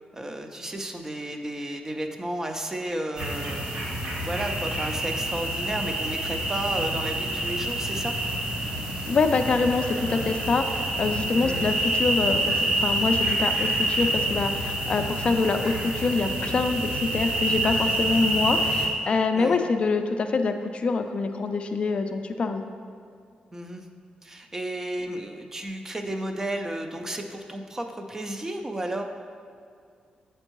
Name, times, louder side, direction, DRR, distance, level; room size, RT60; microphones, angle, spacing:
voice 1, 0.1-3.7 4.2-8.2 11.4-11.6 19.3-19.6 23.5-23.9 24.2-29.0, right 1 dB, 20° right, 5 dB, 0.5 m, -33 dB
sound 1, 3.2-18.9, right 1 dB, 70° right, 1.4 m, -27 dB
voice 2, 9.1-22.6, left 4 dB, 45° left, 6 dB, 0.4 m, -25 dB
7.7 x 4.4 x 3.0 m, 2.2 s
cardioid pair, 110°, 3 cm